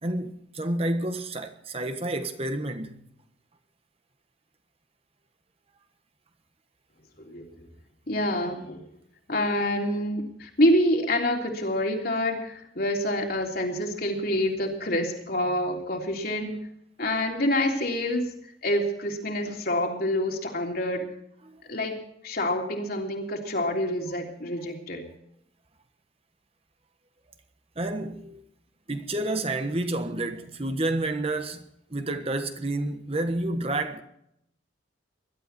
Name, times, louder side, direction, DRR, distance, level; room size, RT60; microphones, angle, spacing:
voice 1, 0.0-3.0 21.4-21.6 27.8-28.4 28.9-34.0, right 2 dB, 30° right, 1.3 m, -30 dB
voice 2, 8.1-8.8 9.3-16.6 17.0-18.3 18.6-21.1 21.7-25.1, left 1 dB, 50° left, 3.4 m, -27 dB
21.0 x 12.5 x 4.4 m
head